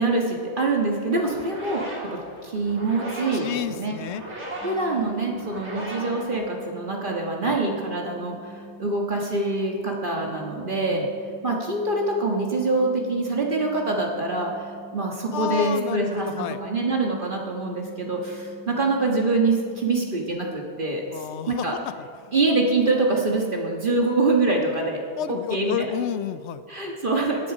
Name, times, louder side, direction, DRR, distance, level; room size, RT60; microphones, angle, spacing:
voice 1, 0.0-1.8 2.1-4.0 4.6-11.0 11.4-21.7 22.3-25.0 25.3-25.7 26.7-27.5, right 3 dB, 50° right, 0 dB, 1.7 m, -25 dB
sound 1, 1.2-7.0, right 1 dB, 90° right, 3.1 m, -37 dB
voice 2, 3.3-4.2 7.4-7.6 10.9-11.1 15.3-16.6 21.1-21.7 22.0-22.3 25.2-26.6, left 9 dB, 85° left, 13 dB, 0.9 m, -31 dB
sound 2, 4.6-20.3, right 1 dB, 10° right, 1.0 m, -45 dB
18.0 x 10.5 x 5.0 m, 2.2 s
omnidirectional pair, 1.1 m